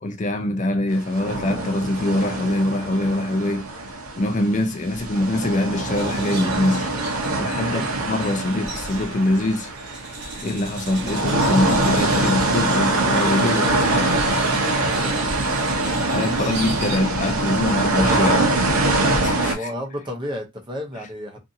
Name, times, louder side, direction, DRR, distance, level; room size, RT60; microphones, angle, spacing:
voice 1, 0.0-3.7 4.2-6.9 7.4-9.7 10.4-14.2 16.1-18.5 19.2-19.7, left 1 dB, 35° left, 0.4 m, -24 dB
sound 1, 1.1-4.6 4.9-19.5, right 2 dB, 85° right, 0.8 m, -23 dB
sound 2, 5.9-17.0, right 3 dB, 55° right, 0.9 m, -37 dB
voice 2, 14.9-15.3 19.5-21.4, left 1 dB, 20° right, 0.6 m, -32 dB
2.6 x 2.6 x 2.6 m
head